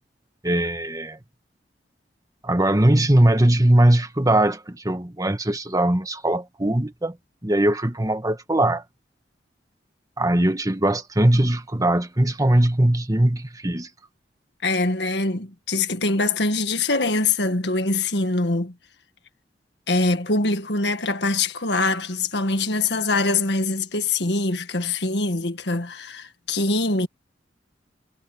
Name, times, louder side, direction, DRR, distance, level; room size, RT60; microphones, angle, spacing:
voice 1, 0.4-1.2 2.4-7.1 7.4-8.8 10.2-13.9, right 1 dB, 20° right, 1.6 m, -20 dB
voice 2, 14.6-18.7 19.9-27.1, left 3 dB, 70° left, 1.9 m, -23 dB
head